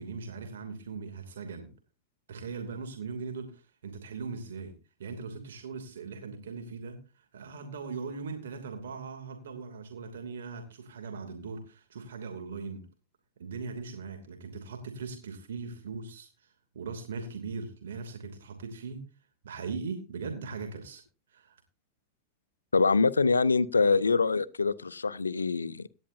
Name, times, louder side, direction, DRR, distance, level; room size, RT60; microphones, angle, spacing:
voice 1, 0.0-1.7 2.3-12.9 13.4-19.1 19.4-21.0 21.3-21.6, right 4 dB, 65° right, 2.8 m, -40 dB
voice 2, 22.7-25.9, left 4 dB, 75° left, 0.6 m, -25 dB
17.0 x 11.0 x 2.7 m
figure-of-eight pair, 90°, 0 cm